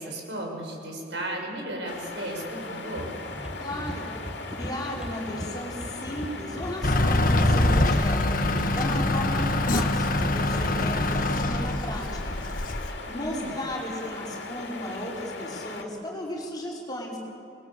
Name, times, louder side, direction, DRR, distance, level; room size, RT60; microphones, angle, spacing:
voice 1, 0.0-3.1 13.1-13.7, right 1 dB, 65° right, 0 dB, 6.6 m, -35 dB
sound 1, 1.9-15.8, left 3 dB, 65° left, 2.7 m, -39 dB
sound 2, 3.0-11.1, equal, 5° right, 1.3 m, -37 dB
voice 2, 3.6-4.1 4.5-8.2 8.5-12.4 13.1-17.2, left 1 dB, 20° left, -3 dB, 4.9 m, -35 dB
Truck / Idling, 6.8-12.9, left 1 dB, 45° left, 1.4 m, -24 dB
27.0 x 21.0 x 8.5 m, 2.8 s
head